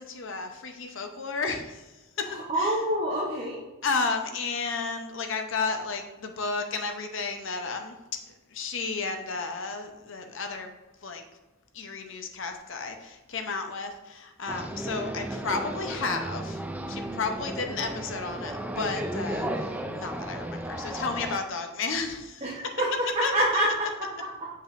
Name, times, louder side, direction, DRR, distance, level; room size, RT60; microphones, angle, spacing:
voice 1, 0.0-1.8 2.2-2.3 3.8-8.0 8.5-10.7 11.0-11.2 11.7-16.6 16.9-22.4 23.2-23.3, left 4 dB, 65° left, 5 dB, 0.8 m, -32 dB
voice 2, 2.2-3.6 22.4-24.5, right 1 dB, 30° right, -5 dB, 1.0 m, -27 dB
sound 1, 14.5-21.4, right 1 dB, 5° right, 0.4 m, -34 dB
7.6 x 5.5 x 2.5 m, 1.1 s
head